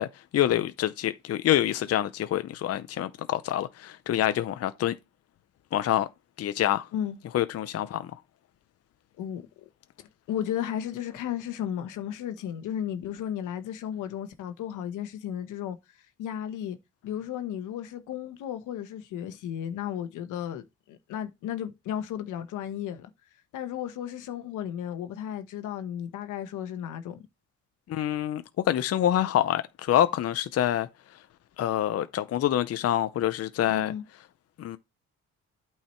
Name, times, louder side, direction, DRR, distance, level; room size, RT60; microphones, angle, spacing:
voice 1, 0.0-5.0 5.7-6.1 6.4-6.9 7.3-8.1 27.9-30.9 31.6-33.9 34.6-34.8, left 12 dB, 55° left, 0.6 m, -26 dB
voice 2, 10.3-15.8 16.2-16.8 17.0-23.1 23.5-27.2 33.6-34.0, left 10 dB, 85° left, 1.2 m, -34 dB
8.6 x 4.7 x 4.4 m
cardioid pair, 90°, 30 cm